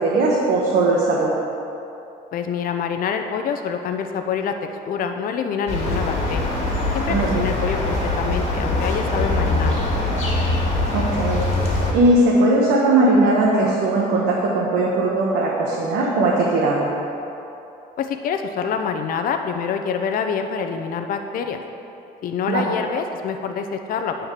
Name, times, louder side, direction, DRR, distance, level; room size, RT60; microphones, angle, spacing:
voice 1, 0.0-1.3 7.1-7.4 10.9-11.4 11.9-16.9 22.5-22.7, right 2 dB, 75° right, -4 dB, 1.2 m, -19 dB
voice 2, 2.3-4.6 4.9-6.5 6.9-9.8 18.0-21.6 22.2-24.2, left 6 dB, 55° left, 6 dB, 0.6 m, -26 dB
sound 1, 5.7-11.9, left 2 dB, 40° left, 2.0 m, -22 dB
9.0 x 4.5 x 6.6 m, 2.8 s
cardioid pair, 110°, 17 cm